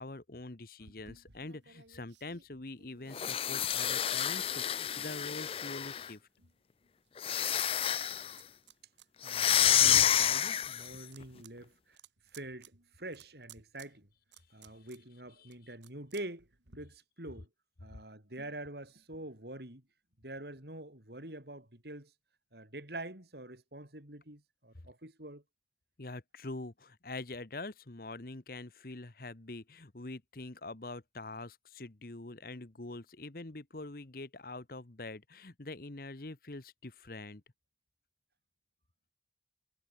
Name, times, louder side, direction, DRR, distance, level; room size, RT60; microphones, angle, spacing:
voice 1, 0.0-6.2 15.4-15.5 26.0-37.4, left 2 dB, 55° left, 1.2 m, -44 dB
sound 1, 0.8-5.9 6.4-7.8 8.0-9.1 9.6-10.3 10.7-16.8, right 6 dB, 90° right, 4.0 m, -59 dB
sound 2, 3.1-6.1 7.2-8.3 9.2-11.0, left 10 dB, 30° left, 0.4 m, -29 dB
voice 2, 9.2-12.0 12.3-14.1 14.5-16.5 16.7-17.5 17.8-19.8 20.2-22.1 22.5-25.4, right 1 dB, 65° right, 4.8 m, -45 dB
head